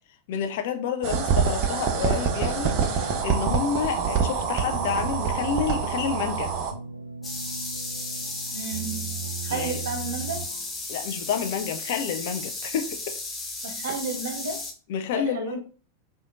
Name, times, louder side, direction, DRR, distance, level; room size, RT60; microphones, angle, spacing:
voice 1, 0.3-6.5 9.5-9.8 10.9-13.2 14.9-15.6, left 7 dB, 50° left, 0.4 m, -29 dB
sound 1, 1.0-6.7, right 6 dB, 40° right, 0.6 m, -26 dB
sound 2, 2.7-10.8, right 5 dB, 85° right, 0.4 m, -37 dB
sound 3, 7.2-14.7, left 2 dB, 15° left, 0.7 m, -34 dB
voice 2, 8.5-10.4 13.6-14.6 15.1-15.6, right 4 dB, 60° right, 1.0 m, -32 dB
4.8 x 2.5 x 2.4 m
figure-of-eight pair, 90°, 0 cm